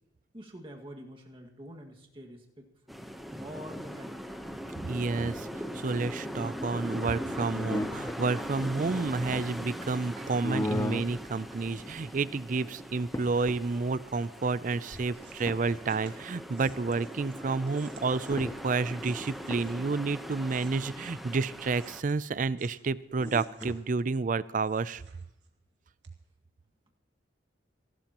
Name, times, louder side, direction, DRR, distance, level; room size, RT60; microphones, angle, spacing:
voice 1, 0.3-3.0 3.4-4.1, equal, 30° right, 1 dB, 1.9 m, -46 dB
sound 1, 2.9-22.0, equal, ahead, 1.0 m, -40 dB
voice 2, 4.9-5.5 5.7-25.0, right 4 dB, 45° right, 17 dB, 0.4 m, -30 dB
sound 2, 7.4-8.2 8.9-9.7 10.4-11.2 11.7-12.3 12.6-12.7 13.0-13.6 14.9-15.7 17.9-18.0 18.3-18.6 19.0-19.7 23.2-23.9, left 1 dB, 15° left, 0.5 m, -36 dB
sound 3, 14.7-20.0 20.4-22.8 23.2-24.2 24.6-25.7 26.0-26.1, right 6 dB, 80° right, 2.3 m, -57 dB
27.5 x 12.5 x 3.0 m, 0.77 s
head